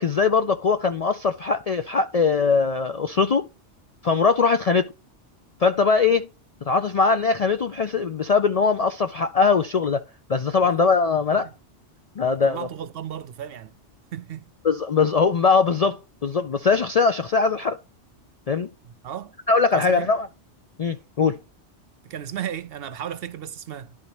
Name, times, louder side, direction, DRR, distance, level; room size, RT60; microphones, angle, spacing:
voice 1, 0.0-3.5 4.0-4.9 5.6-6.3 6.7-10.0 10.3-11.5 12.2-12.7 14.6-17.8 18.5-18.7 19.5-20.3 20.8-21.4, left 5 dB, 55° left, 0.4 m, -21 dB
voice 2, 12.2-13.7 14.1-14.5 18.8-19.3 19.7-20.1 22.0-24.0, right 10 dB, 65° right, 0.7 m, -35 dB
11.5 x 4.0 x 2.9 m
omnidirectional pair, 1.2 m